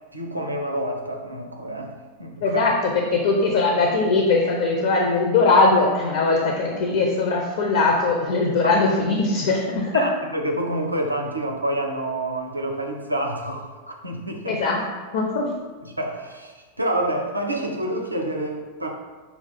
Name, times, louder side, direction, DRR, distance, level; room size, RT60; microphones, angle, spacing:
voice 1, 0.1-2.6 9.9-14.6 15.8-18.9, right 1 dB, 85° right, 2 dB, 0.4 m, -28 dB
voice 2, 2.4-10.1 14.5-14.8 15.1-15.5, left 3 dB, 55° left, 0 dB, 0.6 m, -20 dB
5.5 x 2.3 x 4.2 m, 1.4 s
figure-of-eight pair, 90°, 0 cm